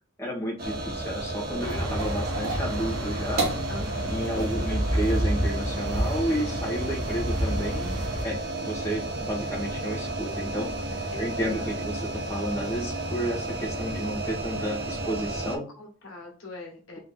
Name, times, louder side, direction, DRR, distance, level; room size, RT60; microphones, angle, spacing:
voice 1, 0.2-3.5 4.0-10.7 11.2-15.7, equal, 15° left, -2 dB, 1.0 m, -31 dB
sound 1, 0.6-15.6, right 2 dB, 50° right, 0.8 m, -33 dB
sound 2, 1.6-8.2, right 1 dB, 80° right, 1.0 m, -29 dB
voice 2, 1.7-2.1 3.7-4.9 11.1-12.1 15.7-17.0, left 2 dB, 85° left, 1 dB, 1.3 m, -42 dB
3.7 x 2.7 x 3.6 m, 0.37 s
head